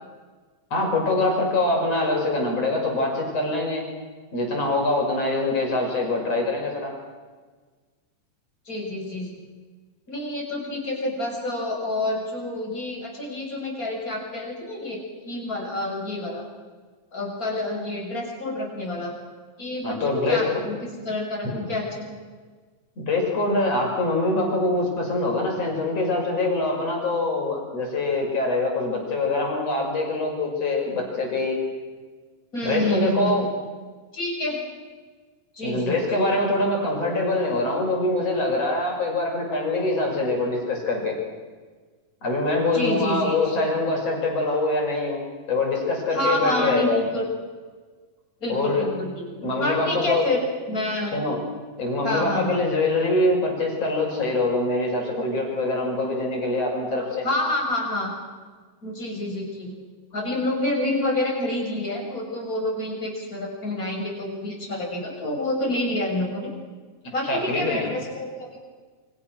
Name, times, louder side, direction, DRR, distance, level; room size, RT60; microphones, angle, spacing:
voice 1, 0.7-3.8 4.3-6.9 19.8-20.6 23.0-31.6 32.6-33.5 35.6-41.2 42.2-45.2 45.5-47.0 48.5-48.9 49.4-50.3 51.1-51.4 51.8-57.3 67.2-67.9, left 2 dB, 45° left, 0 dB, 7.0 m, -24 dB
voice 2, 8.7-9.3 10.1-16.5 17.1-19.1 19.6-20.0 20.3-20.8 21.0-22.1 32.5-33.5 34.1-34.6 35.6-36.2 42.7-43.4 46.1-47.3 48.4-51.1 52.0-52.6 57.2-58.1 58.8-59.7 60.1-66.5 67.1-68.6, left 1 dB, 25° left, -1 dB, 7.2 m, -28 dB
29.0 x 25.5 x 6.3 m, 1.4 s
omnidirectional pair, 3.9 m